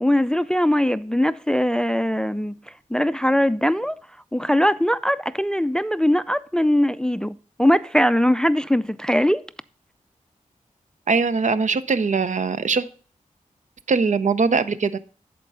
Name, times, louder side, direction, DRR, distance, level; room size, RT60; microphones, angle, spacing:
voice 1, 0.0-2.6 2.9-4.0 4.3-9.4, equal, 5° left, 0.3 m, -21 dB
voice 2, 11.1-12.9 13.9-15.0, right 4 dB, 65° right, 0.6 m, -21 dB
10.5 x 4.5 x 5.5 m
cardioid pair, 55°, 14 cm